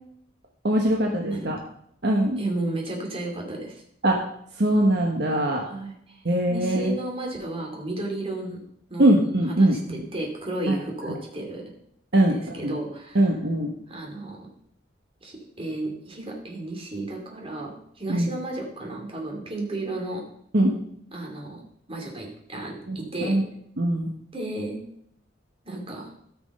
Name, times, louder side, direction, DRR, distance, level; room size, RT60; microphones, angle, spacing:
voice 1, 0.6-1.6 2.0-2.4 4.0-4.2 4.5-5.7 6.2-7.0 9.0-10.0 10.7-10.8 11.1-11.2 12.1-12.8 13.1-13.7 18.1-18.3 20.5-20.7 22.9-23.4 23.8-24.1, right 1 dB, 60° right, 1 dB, 1.3 m, -22 dB
voice 2, 2.4-3.8 5.6-8.6 8.9-9.1 9.6-11.6 12.2-13.2 13.9-14.5 15.2-20.2 21.1-21.6 21.9-23.4 24.3-24.8 25.6-26.1, right 2 dB, 30° right, 0 dB, 2.7 m, -33 dB
13.5 x 6.2 x 5.4 m, 0.70 s
head